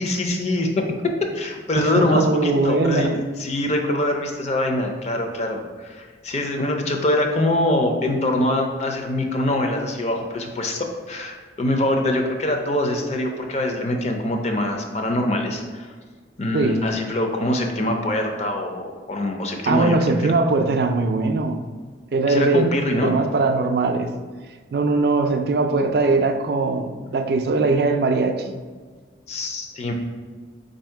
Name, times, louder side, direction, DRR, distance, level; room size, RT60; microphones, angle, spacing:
voice 1, 0.0-15.9 16.4-20.0 22.3-23.1 29.3-29.9, left 1 dB, 35° left, 3 dB, 0.5 m, -24 dB
voice 2, 1.8-3.1 16.5-16.8 19.7-21.6 22.1-24.1 24.7-28.5, right 3 dB, 55° right, 6 dB, 0.3 m, -20 dB
4.1 x 2.7 x 4.4 m, 1.5 s
head